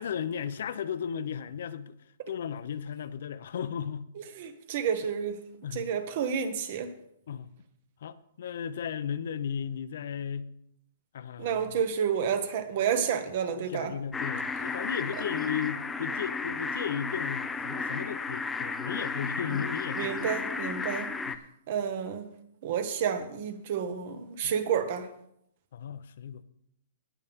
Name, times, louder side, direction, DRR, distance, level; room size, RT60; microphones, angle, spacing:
voice 1, 0.0-2.0 2.3-4.1 5.6-5.9 7.3-7.5 8.0-10.5 11.1-11.8 13.5-20.4 21.3-21.4 24.4-24.5 25.7-26.4, left 8 dB, 65° left, 0.6 m, -35 dB
voice 2, 4.4-5.4 5.7-6.9 11.4-13.9 19.9-21.1 21.7-22.3 22.6-25.1, right 7 dB, 45° right, 1.3 m, -30 dB
sound 1, 14.1-21.4, left 4 dB, 5° left, 0.5 m, -33 dB
18.0 x 7.1 x 3.6 m
hypercardioid pair, 165°, 0 cm